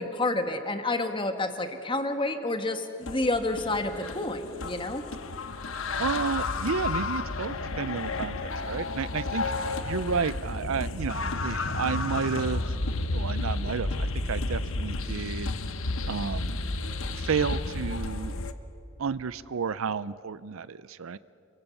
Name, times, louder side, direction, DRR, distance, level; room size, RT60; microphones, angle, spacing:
voice 1, 0.0-5.0, left 2 dB, 20° left, 7 dB, 1.5 m, -29 dB
sound 1, 3.0-18.5, left 3 dB, 60° left, 1.1 m, -32 dB
voice 2, 6.0-12.6 13.1-15.5 16.1-16.6 17.1-18.3 19.0-21.2, right 5 dB, 65° right, 17 dB, 0.5 m, -31 dB
28.5 x 24.0 x 7.1 m, 2.9 s
head